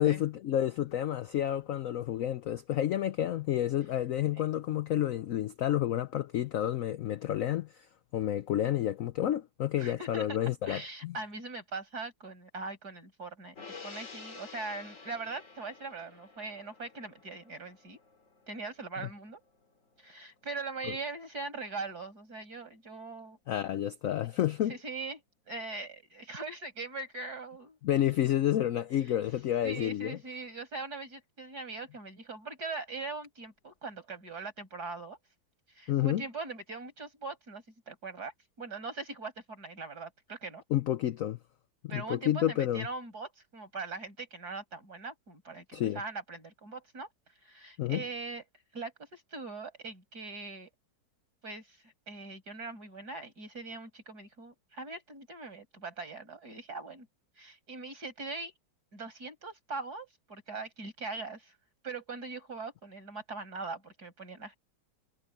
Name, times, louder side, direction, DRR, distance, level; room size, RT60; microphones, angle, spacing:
voice 1, 0.0-7.9 8.1-11.1 19.0-19.1 23.5-24.8 27.8-30.2 35.9-36.2 40.7-41.4 41.9-42.9 45.7-46.0 47.8-48.0, left 12 dB, 75° left, 0.7 m, -30 dB
voice 2, 9.8-18.0 18.5-19.4 20.0-23.4 24.7-25.2 25.5-27.8 28.2-28.3 29.6-35.2 35.7-40.6 41.9-47.1 47.4-48.4 48.7-50.7 51.4-57.1 57.4-58.5 58.9-61.5 61.8-64.6, right 3 dB, 55° right, 6.3 m, -41 dB
Gong, 13.6-20.2 20.5-20.7, left 4 dB, 45° left, 2.5 m, -51 dB
omnidirectional pair, 2.0 m